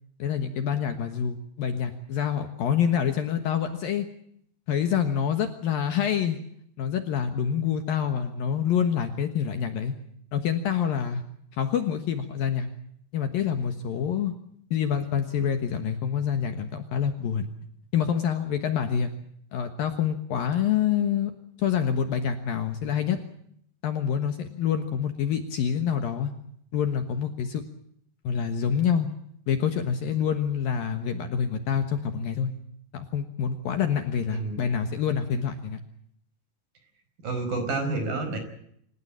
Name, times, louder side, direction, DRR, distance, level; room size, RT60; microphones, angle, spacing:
voice 1, 0.2-4.1 4.7-6.4 6.8-9.9 10.3-11.2 11.5-12.7 13.1-14.3 14.7-17.5 17.9-19.1 19.5-21.3 21.6-23.2 23.8-26.3 26.7-27.6 28.2-29.1 29.5-32.5 32.9-35.8, left 8 dB, 65° left, 7 dB, 2.7 m, -26 dB
voice 2, 37.2-38.4, right 3 dB, 50° right, 7 dB, 6.3 m, -29 dB
27.5 x 16.0 x 8.7 m, 0.69 s
omnidirectional pair, 5.2 m